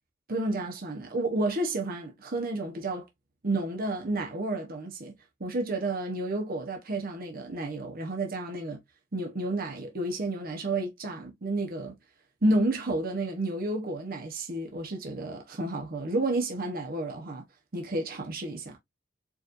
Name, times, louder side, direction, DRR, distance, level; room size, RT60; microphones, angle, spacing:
voice 1, 0.3-3.0 3.4-5.1 5.4-8.8 9.1-12.0 12.4-17.4 17.7-18.8, right 2 dB, 50° right, 1.0 m, -31 dB
4.7 x 3.2 x 2.5 m
head